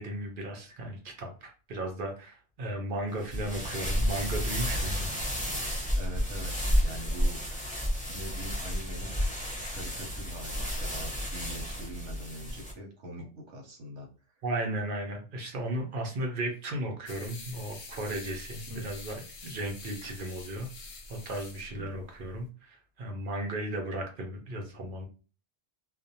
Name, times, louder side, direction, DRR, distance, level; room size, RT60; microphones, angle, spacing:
voice 1, 0.0-5.1 13.2-13.3 14.4-20.7 21.1-25.1, right 1 dB, 55° right, 2 dB, 0.7 m, -35 dB
sound 1, 3.2-12.7, equal, 10° left, 0.7 m, -31 dB
voice 2, 3.2-3.6 5.9-7.4 8.1-9.1 9.7-14.1 18.7-18.9 21.7-22.0, equal, 75° right, 1 dB, 1.0 m, -43 dB
sound 2, 17.1-22.5, left 3 dB, 55° left, 0.5 m, -46 dB
2.4 x 2.0 x 2.7 m, 0.36 s
omnidirectional pair, 1.2 m